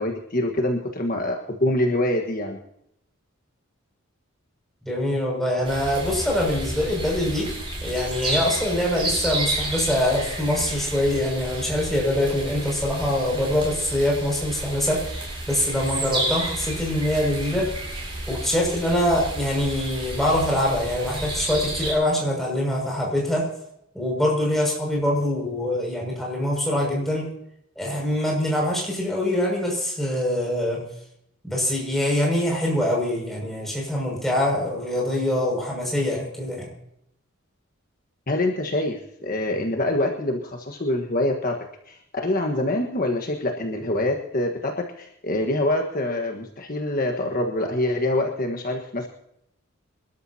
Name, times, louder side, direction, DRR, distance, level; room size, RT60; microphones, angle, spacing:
voice 1, 0.0-2.6 38.3-41.6 41.9-49.1, left 1 dB, 45° left, 2 dB, 1.5 m, -25 dB
voice 2, 4.8-7.5 7.8-15.2 15.5-17.7 18.3-23.5 23.9-27.3 27.8-30.8 31.4-36.7, left 1 dB, ahead, -2 dB, 6.4 m, -24 dB
sound 1, 5.6-21.9, right 2 dB, 25° right, 7.1 m, -31 dB
27.0 x 13.0 x 2.9 m, 0.75 s
head